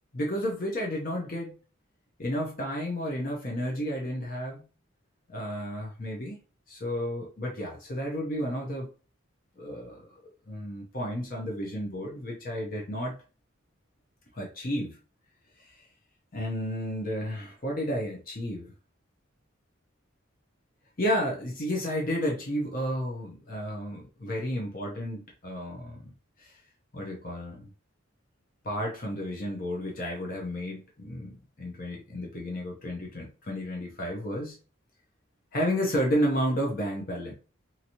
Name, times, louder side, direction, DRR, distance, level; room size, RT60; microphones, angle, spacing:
voice 1, 0.1-1.6 2.2-4.6 5.3-6.4 6.7-8.9 9.6-10.1 10.5-13.2 14.3-15.0 16.3-18.7 21.0-26.1 26.4-26.5 26.9-27.7 28.6-34.6 35.5-37.3, equal, 40° left, -1 dB, 0.6 m, -32 dB
2.9 x 2.6 x 2.8 m, 0.36 s
head